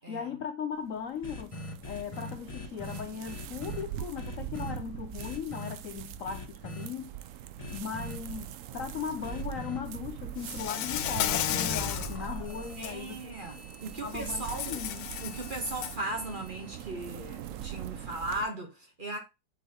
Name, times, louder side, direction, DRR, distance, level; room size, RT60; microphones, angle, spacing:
voice 1, 0.0-7.1 7.7-13.6 14.0-15.1, left 7 dB, 65° left, 0.8 m, -38 dB
sound 1, 0.7-18.5, right 11 dB, 90° right, 0.7 m, -42 dB
sound 2, 1.2-3.8 4.2-4.8 5.2-5.7 6.2-6.9 7.6-8.2 9.2-9.8 10.9-16.8, left 2 dB, 25° left, 1.0 m, -42 dB
Insect, 10.4-12.2 12.6-12.9 14.2-16.0, left 11 dB, 90° left, 1.3 m, -33 dB
voice 2, 12.8-14.8 15.2-19.2, right 2 dB, 35° right, 1.1 m, -37 dB
8.6 x 4.0 x 2.9 m
omnidirectional pair, 1.9 m